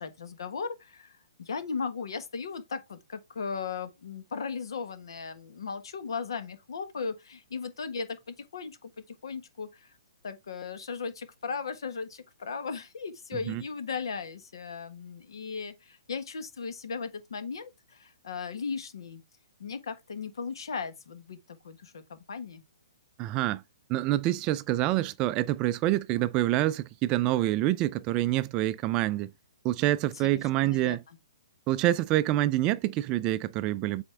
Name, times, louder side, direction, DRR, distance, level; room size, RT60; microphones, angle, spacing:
voice 1, 0.0-8.9 9.2-9.9 10.2-19.2 19.6-22.6 30.1-31.0, left 5 dB, 70° left, 1.4 m, -37 dB
voice 2, 23.2-23.6 23.9-29.3 29.6-31.0 31.7-34.0, right 15 dB, 30° right, 0.3 m, -26 dB
7.9 x 4.3 x 3.4 m
hypercardioid pair, 135°, 3 cm